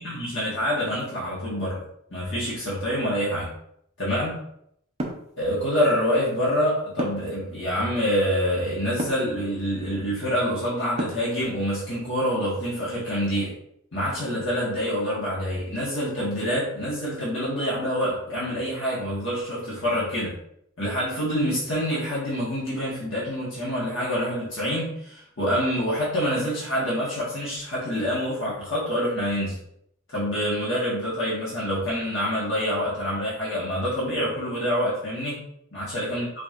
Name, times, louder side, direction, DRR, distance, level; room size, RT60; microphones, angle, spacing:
voice 1, 0.0-1.8 2.1-3.5 4.0-4.4 5.4-13.5 13.9-20.3 20.8-29.5 30.1-35.4 35.7-36.2, equal, 65° left, -8 dB, 1.4 m, -26 dB
sound 1, 5.0-5.3 7.0-7.4 9.0-9.3 11.0-11.4, right 1 dB, 35° right, 0.6 m, -30 dB
5.1 x 2.9 x 2.5 m, 0.72 s
head